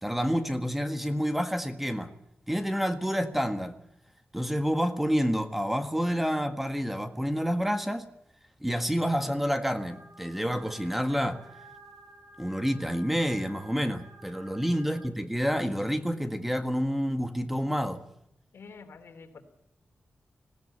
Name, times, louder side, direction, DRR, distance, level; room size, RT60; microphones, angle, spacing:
voice 1, 0.0-2.1 2.5-3.8 4.3-8.0 8.6-11.4 12.4-18.0, equal, 5° right, 1.6 m, -28 dB
sound 1, 9.6-15.1, right 1 dB, 40° right, 3.0 m, -52 dB
voice 2, 14.8-15.2 18.5-19.4, left 5 dB, 80° left, 3.3 m, -48 dB
20.0 x 16.5 x 9.6 m
wide cardioid pair, 120°, 4 cm